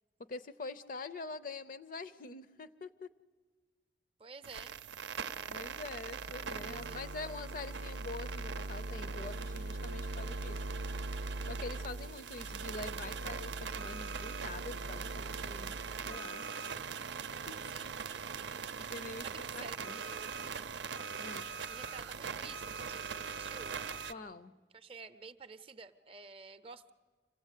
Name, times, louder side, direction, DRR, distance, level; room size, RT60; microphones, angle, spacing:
voice 1, 0.3-3.1 5.5-10.6 11.5-15.7 16.1-16.5 17.5-17.6 18.8-20.0 21.2-21.5 24.1-24.5, left 3 dB, 50° left, 13 dB, 0.6 m, -45 dB
voice 2, 4.2-4.8 6.7-7.1 17.7-18.0 19.2-20.7 21.7-23.8 24.7-26.9, right 4 dB, 30° right, 10 dB, 0.6 m, -51 dB
sound 1, 4.4-24.1, right 4 dB, 85° right, 0.6 m, -40 dB
26.5 x 16.0 x 8.2 m, 1.5 s
head